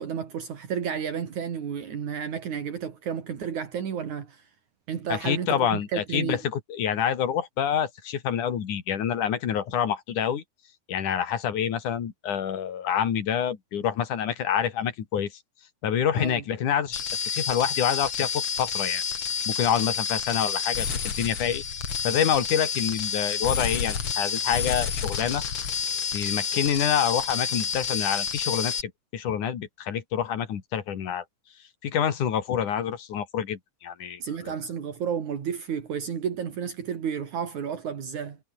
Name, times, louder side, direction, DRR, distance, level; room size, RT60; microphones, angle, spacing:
voice 1, 0.0-4.5 4.9-6.4 16.2-16.4 34.2-38.4, right 7 dB, 70° right, 4.0 m, -32 dB
voice 2, 5.1-10.4 10.9-15.4 15.8-19.0 19.5-21.6 22.0-25.4 26.1-31.3 31.8-34.5, left 8 dB, 80° left, 3.8 m, -27 dB
sound 1, 16.9-28.8, left 6 dB, 45° left, 3.1 m, -29 dB
omnidirectional pair, 3.6 m